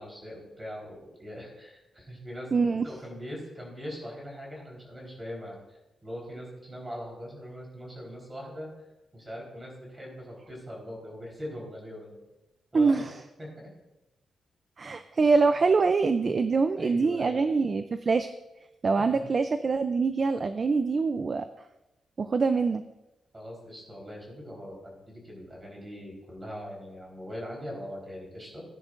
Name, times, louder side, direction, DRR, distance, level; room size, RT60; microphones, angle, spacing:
voice 1, 0.0-8.7 9.1-12.2 12.7-13.1 13.4-13.7 15.1-15.2 16.8-17.4 19.0-19.2 23.3-28.6, equal, 15° right, -2 dB, 3.8 m, -41 dB
voice 2, 2.5-2.9 12.7-13.1 14.8-18.3 18.8-21.5 22.2-22.8, right 4 dB, 35° right, 9 dB, 0.4 m, -24 dB
17.0 x 9.9 x 2.5 m, 0.97 s
wide cardioid pair, 170°, 0 cm